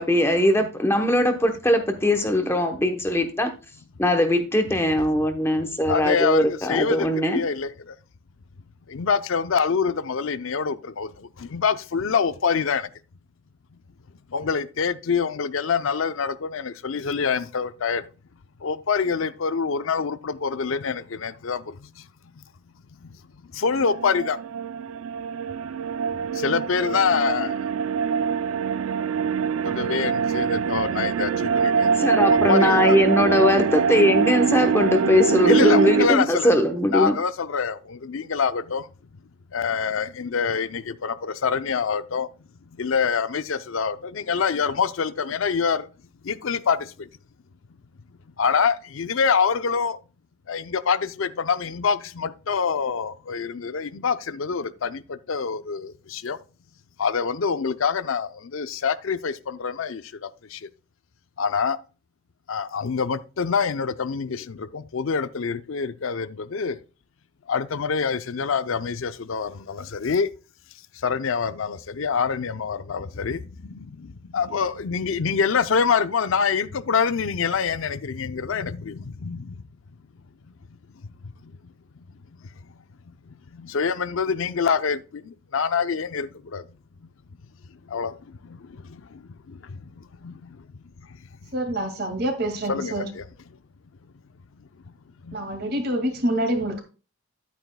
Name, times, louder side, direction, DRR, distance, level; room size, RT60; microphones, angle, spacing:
voice 1, 0.0-3.5 4.0-7.4 32.0-37.1, left 1 dB, 10° left, 0.8 m, -21 dB
voice 2, 5.9-7.7 8.9-11.1 11.5-12.9 14.3-18.0 18.6-21.6 23.5-24.4 26.4-27.5 29.6-32.0 32.3-33.0 35.4-36.5 36.9-38.8 39.5-42.3 42.8-45.9 46.3-46.8 48.4-50.0 50.5-55.0 55.3-56.4 57.0-60.0 60.5-60.6 61.4-61.8 62.5-66.8 67.5-70.3 71.0-73.4 74.3-79.5 83.7-85.0 85.5-86.6 87.9-88.1 90.2-90.3 92.7-93.2, left 6 dB, 70° left, 0.5 m, -25 dB
sound 1, 23.8-36.1, right 6 dB, 80° right, 0.4 m, -23 dB
voice 3, 91.5-93.1 95.3-96.8, right 1 dB, 50° right, 2.0 m, -26 dB
10.5 x 8.9 x 2.2 m
head